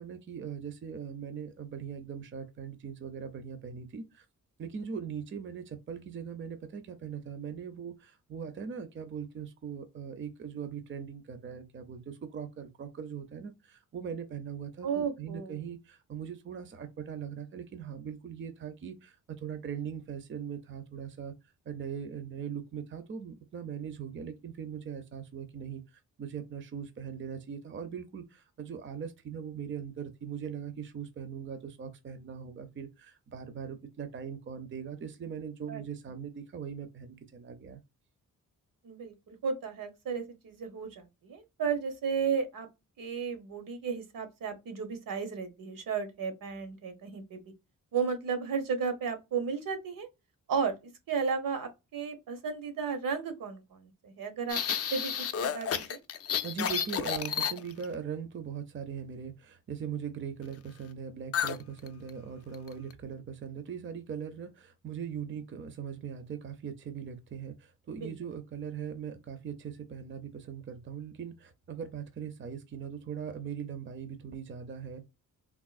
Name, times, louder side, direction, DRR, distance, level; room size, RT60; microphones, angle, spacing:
voice 1, 0.0-4.3 4.6-21.3 21.7-37.8 56.4-75.0, right 7 dB, 35° right, 0.5 m, -40 dB
voice 2, 14.8-15.6 35.7-35.8 38.8-42.7 43.0-47.4 47.9-50.1 50.5-50.8 51.1-54.6 54.9-55.1 55.4-56.0 68.0-68.1, right 6 dB, 80° right, 0.9 m, -34 dB
sound 1, 54.5-57.9 61.3-61.6 61.9-62.1 62.5-62.9, left 8 dB, 45° left, 0.4 m, -31 dB
3.6 x 2.5 x 2.4 m
wide cardioid pair, 115°, 33 cm